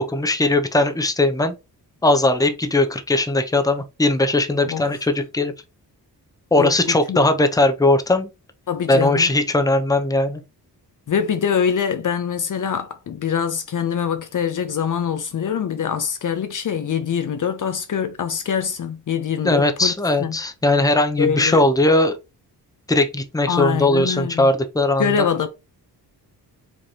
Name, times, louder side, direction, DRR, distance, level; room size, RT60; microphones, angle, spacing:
voice 1, 0.0-1.5 2.0-5.5 6.5-8.3 8.9-10.4 19.4-22.2 22.9-25.3, left 2 dB, 10° left, 0.8 m, -19 dB
voice 2, 6.6-7.2 8.7-9.3 11.1-19.9 20.2-20.4 21.2-21.6 23.5-24.5 25.0-25.5, left 7 dB, 50° left, 0.7 m, -24 dB
5.2 x 3.3 x 2.9 m
cardioid pair, 70°, 40 cm